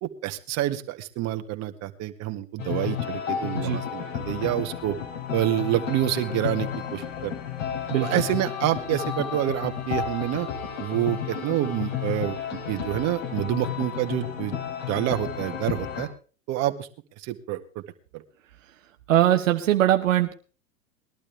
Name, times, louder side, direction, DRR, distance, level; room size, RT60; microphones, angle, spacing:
voice 1, 0.0-5.0 5.3-7.3 8.0-10.5 10.8-14.6 14.9-16.1 16.5-16.9 17.2-17.8 18.1-18.2, right 14 dB, 40° right, 6 dB, 1.8 m, -28 dB
sound 1, 2.6-16.1, left 9 dB, 70° left, 4.4 m, -32 dB
voice 2, 7.9-8.2 19.1-20.3, right 12 dB, 75° right, 5 dB, 1.2 m, -21 dB
20.5 x 12.0 x 3.4 m, 0.37 s
hypercardioid pair, 100°, 39 cm